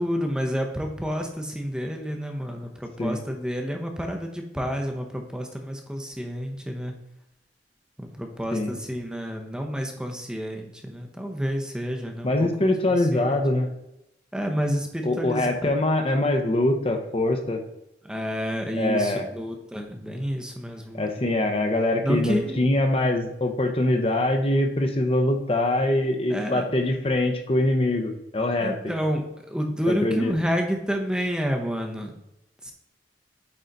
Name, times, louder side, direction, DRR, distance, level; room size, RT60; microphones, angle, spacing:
voice 1, 0.0-6.9 8.0-12.5 12.9-13.4 14.3-15.7 18.0-21.1 22.0-22.7 26.3-26.6 28.6-32.1 32.6-32.7, equal, 5° right, 2 dB, 0.8 m, -29 dB
voice 2, 12.2-13.7 15.0-17.6 18.8-19.3 20.9-28.8 29.9-30.3, left 1 dB, 30° left, 5 dB, 0.8 m, -23 dB
8.6 x 3.9 x 4.0 m, 0.87 s
head